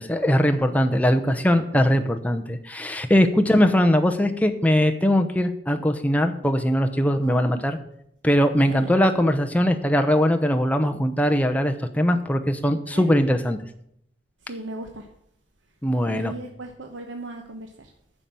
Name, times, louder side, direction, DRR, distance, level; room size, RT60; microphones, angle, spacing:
voice 1, 0.0-7.8 8.2-13.6 15.8-16.3, equal, 10° left, 5 dB, 0.8 m, -21 dB
voice 2, 8.6-8.9 12.9-13.1 14.4-15.1 16.0-17.9, right 2 dB, 75° right, 3 dB, 1.1 m, -37 dB
9.9 x 6.9 x 7.5 m, 0.73 s
head